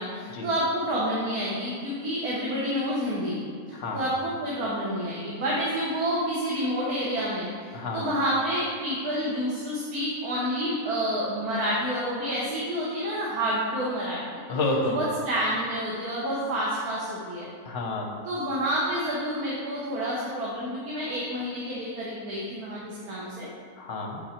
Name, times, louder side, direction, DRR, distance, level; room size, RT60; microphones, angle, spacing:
voice 1, 0.0-3.4 3.7-14.4 14.8-17.5 18.2-23.5, equal, 85° right, -6 dB, 1.6 m, -29 dB
voice 2, 7.7-8.0 14.5-15.0 17.7-18.1 23.8-24.2, left 2 dB, 55° left, 1 dB, 1.1 m, -29 dB
6.7 x 5.4 x 4.3 m, 2.1 s
omnidirectional pair, 1.6 m